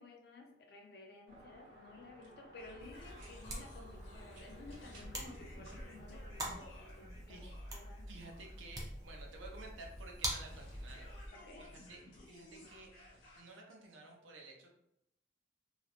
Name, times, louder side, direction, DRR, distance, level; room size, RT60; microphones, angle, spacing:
voice 1, 0.0-8.1 11.3-11.7, left 2 dB, 55° left, 2 dB, 0.4 m, -55 dB
sound 1, 1.3-6.7, equal, 60° right, 0.9 m, -56 dB
sound 2, 2.6-13.4, left 1 dB, 70° left, 0.8 m, -57 dB
sound 3, 2.8-11.3, right 1 dB, 20° right, 0.4 m, -46 dB
voice 2, 8.1-11.3 11.6-12.0 12.3-12.9 13.4-14.7, right 2 dB, 75° right, 0 dB, 0.6 m, -53 dB
2.4 x 2.0 x 2.8 m, 0.81 s
head